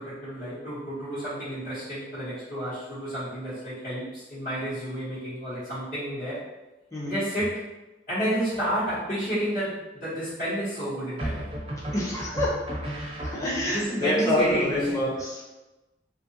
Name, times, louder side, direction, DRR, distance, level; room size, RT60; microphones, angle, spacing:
voice 1, 0.0-6.4 7.0-7.7 8.1-11.5 13.7-15.0, equal, 50° left, -15 dB, 1.1 m, -30 dB
sound 1, 8.5-9.1 11.2-13.8, right 1 dB, 30° right, 0.5 m, -35 dB
voice 2, 11.9-12.7 13.2-15.4, left 1 dB, 20° left, -6 dB, 0.7 m, -27 dB
2.7 x 2.5 x 2.8 m, 1.1 s
head